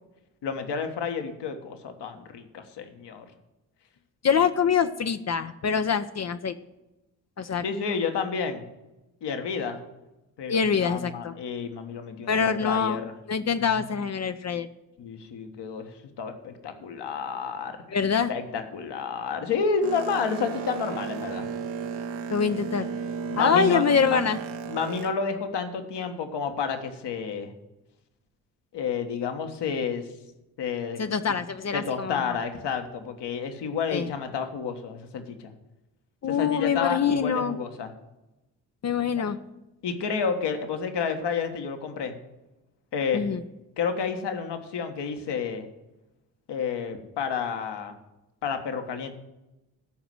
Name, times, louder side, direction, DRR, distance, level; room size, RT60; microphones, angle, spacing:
voice 1, 0.4-3.3 7.6-8.7 9.2-9.8 10.4-13.1 13.6-13.9 15.0-17.8 18.3-21.5 23.3-24.2 24.7-27.5 28.7-30.1 30.6-31.0 31.7-35.5 36.3-37.9 39.8-42.2 42.9-43.2 43.8-45.6 46.5-47.9 48.4-49.1, left 5 dB, 60° left, 6 dB, 1.5 m, -30 dB
voice 2, 4.2-6.5 7.4-7.6 10.5-11.3 12.3-13.0 13.3-14.7 17.9-18.3 22.3-22.9 23.4-24.4 31.0-32.2 33.9-34.1 36.2-37.6 38.8-39.4 43.1-43.4, left 6 dB, 35° left, 10 dB, 0.7 m, -25 dB
Boat Water vehicle, 19.8-25.1, right 5 dB, 70° right, 1.1 m, -34 dB
13.0 x 5.0 x 7.7 m, 0.98 s
hypercardioid pair, 40°, 47 cm